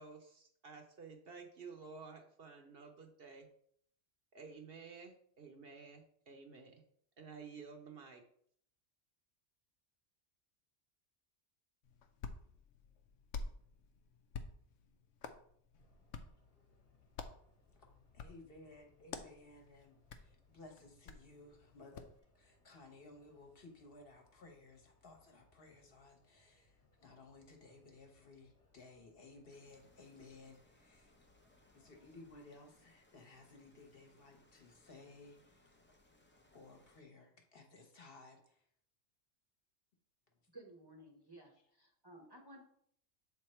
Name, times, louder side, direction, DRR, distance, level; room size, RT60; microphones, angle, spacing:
voice 1, 0.0-3.5 4.3-6.7 7.2-8.2, right 5 dB, 55° right, 4 dB, 0.9 m, -52 dB
Hands, 11.8-22.2, left 4 dB, 85° left, 1.0 m, -51 dB
sound 1, 15.8-32.4, left 3 dB, 30° left, 1.3 m, -73 dB
voice 2, 18.1-22.1 22.3-26.7 27.0-31.1 31.7-35.6 36.5-38.5, left 2 dB, 55° left, 3 dB, 1.2 m, -58 dB
sound 2, 29.5-37.0, left 1 dB, 15° left, 0.4 m, -69 dB
voice 3, 40.5-42.6, right 1 dB, 25° right, 1 dB, 0.8 m, -56 dB
7.4 x 3.5 x 4.3 m, 0.65 s
omnidirectional pair, 1.2 m